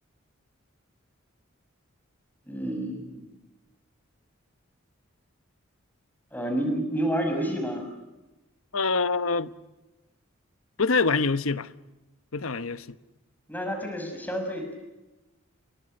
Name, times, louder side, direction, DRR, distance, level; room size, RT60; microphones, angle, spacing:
voice 1, 2.5-3.3 6.3-7.8 13.5-14.8, right 1 dB, 10° left, 6.0 m, -29 dB
voice 2, 8.7-9.5 10.8-11.7 12.3-13.0, left 4 dB, 90° left, 1.1 m, -25 dB
30.0 x 23.5 x 6.6 m
head